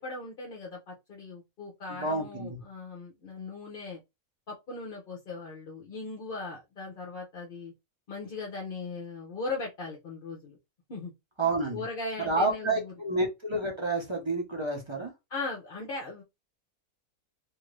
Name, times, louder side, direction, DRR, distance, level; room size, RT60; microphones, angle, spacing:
voice 1, 0.0-4.0 4.5-7.7 8.1-10.6 10.9-11.1 11.7-12.9 15.3-16.2, left 3 dB, 50° left, 0.7 m, -38 dB
voice 2, 1.9-2.6 11.4-11.8 12.2-15.1, right 2 dB, 30° right, 0.6 m, -29 dB
2.8 x 2.5 x 3.1 m
omnidirectional pair, 1.6 m